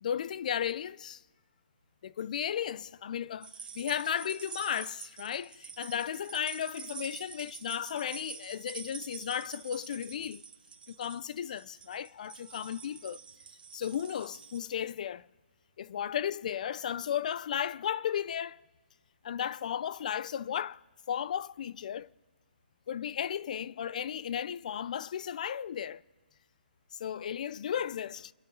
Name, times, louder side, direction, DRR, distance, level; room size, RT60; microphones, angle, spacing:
voice 1, 0.0-1.2 2.0-10.4 10.9-13.2 13.7-15.3 15.8-18.6 19.2-20.8 21.1-22.1 22.9-26.0 27.0-28.3, left 9 dB, 50° left, 0.5 m, -34 dB
sound 1, 3.4-14.6, right 6 dB, 60° right, 1.6 m, -47 dB
29.5 x 11.0 x 4.0 m
hypercardioid pair, 150°, 5 cm